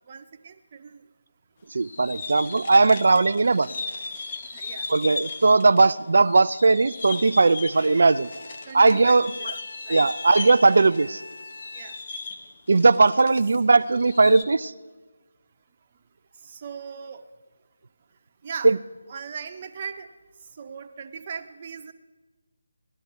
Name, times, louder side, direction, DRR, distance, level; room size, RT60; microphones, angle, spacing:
voice 1, 0.1-1.0 4.5-4.9 8.7-9.5 9.8-10.0 11.7-12.0 16.4-17.2 18.4-18.7 19.1-20.1 20.6-21.9, right 6 dB, 35° right, 7 dB, 0.8 m, -38 dB
voice 2, 1.7-3.8 4.9-8.3 8.7-9.5 9.9-11.2 12.7-14.7 18.6-18.8, right 3 dB, 60° right, 13 dB, 0.3 m, -19 dB
sound 1, 1.8-5.9 6.2-13.6 13.8-14.4, left 4 dB, 35° left, 1.1 m, -37 dB
Bowed string instrument, 7.7-12.3, left 3 dB, 65° left, 0.7 m, -42 dB
17.5 x 11.5 x 4.7 m, 1.3 s
figure-of-eight pair, 160°, 0 cm